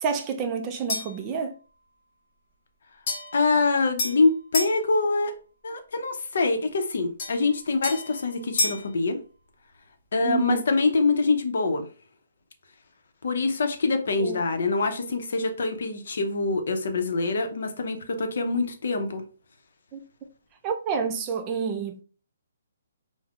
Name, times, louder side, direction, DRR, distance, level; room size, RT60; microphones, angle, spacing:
voice 1, 0.0-1.5 10.2-10.6 14.2-14.4 19.9-20.0 20.6-22.0, right 6 dB, 20° right, 0.3 m, -29 dB
sound 1, 0.9-1.3 3.1-4.8 7.2-8.9, left 2 dB, 30° left, 1.0 m, -31 dB
voice 2, 3.3-5.3 5.6-9.2 10.1-11.8 13.2-19.2, left 3 dB, 65° left, 0.5 m, -25 dB
3.4 x 2.0 x 2.3 m
hypercardioid pair, 165°, 0 cm